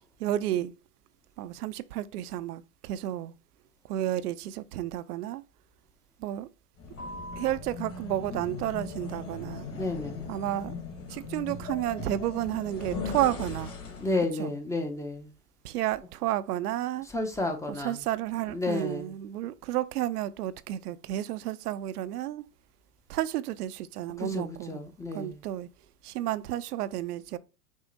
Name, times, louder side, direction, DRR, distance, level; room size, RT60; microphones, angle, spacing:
voice 1, 0.2-0.7 1.4-3.3 3.9-5.4 6.2-6.5 7.4-9.7 10.3-10.8 11.1-13.7 14.4-14.5 15.6-17.1 17.8-22.4 23.1-24.8 25.1-25.7 26.0-27.4, right 13 dB, 80° right, 0.5 m, -31 dB
sound 1, 6.8-14.3, left 4 dB, 30° left, 1.3 m, -38 dB
voice 2, 9.7-10.3 14.0-15.3 17.1-18.0 18.5-19.1 24.2-25.4, left 2 dB, 5° left, 0.5 m, -32 dB
6.2 x 2.1 x 3.8 m
hypercardioid pair, 110°, 45 cm